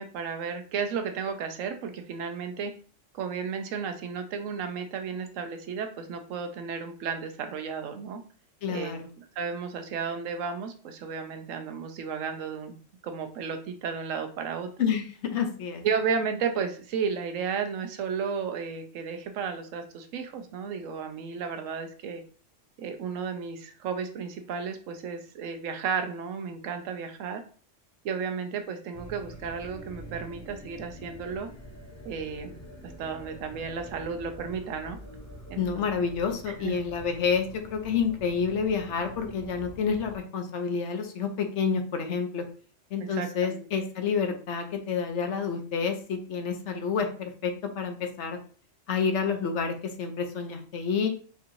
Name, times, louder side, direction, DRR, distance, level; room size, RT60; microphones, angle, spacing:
voice 1, 0.0-2.7 3.1-8.2 8.7-12.7 13.0-14.7 15.8-22.2 22.8-27.4 28.0-31.5 32.0-32.6 32.8-35.0 35.5-35.8 36.5-36.7 43.0-43.7, right 6 dB, 85° right, 7 dB, 1.0 m, -33 dB
voice 2, 8.6-9.1 14.8-15.8 35.6-42.4 42.9-48.4 48.9-51.1, left 6 dB, 70° left, 5 dB, 0.9 m, -29 dB
sound 1, 28.9-40.2, equal, 25° left, 0.3 m, -45 dB
4.5 x 2.9 x 2.5 m, 0.41 s
omnidirectional pair, 1.3 m